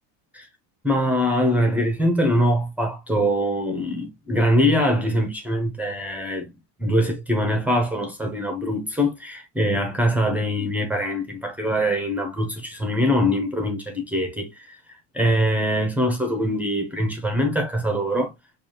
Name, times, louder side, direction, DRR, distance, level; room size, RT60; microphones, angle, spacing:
voice 1, 0.8-6.5 6.8-14.8 15.1-18.3, equal, 5° right, 0.4 m, -23 dB
4.8 x 2.4 x 2.7 m
cardioid pair, 155°, 45 cm